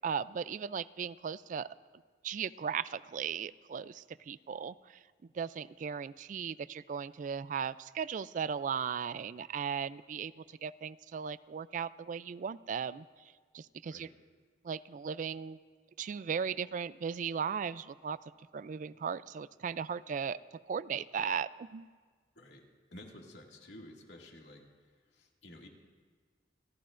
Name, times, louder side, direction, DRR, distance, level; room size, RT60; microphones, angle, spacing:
voice 1, 0.0-1.7 2.2-4.7 5.3-13.0 13.5-14.1 14.6-15.6 16.0-18.2 18.5-20.4 20.7-21.9, right 7 dB, 45° right, 17 dB, 0.3 m, -37 dB
voice 2, 22.4-25.7, left 1 dB, 85° left, 0 dB, 2.2 m, -53 dB
28.5 x 13.5 x 2.5 m, 1.5 s
head